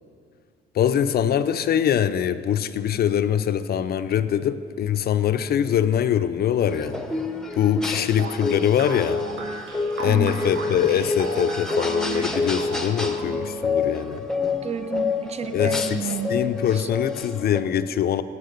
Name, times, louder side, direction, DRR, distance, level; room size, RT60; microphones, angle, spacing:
voice 1, 0.7-7.0 7.6-9.2 10.0-14.2 15.5-16.0 16.3-18.2, left 9 dB, 55° left, 12 dB, 0.4 m, -23 dB
sound 1, 6.7-17.6, left 3 dB, 5° left, 0.7 m, -28 dB
sound 2, 8.2-13.5, right 3 dB, 90° right, 1.2 m, -35 dB
voice 2, 10.1-10.4 14.5-16.9, right 6 dB, 35° right, 13 dB, 0.4 m, -31 dB
10.5 x 4.4 x 6.5 m, 2.3 s
cardioid pair, 90°, 20 cm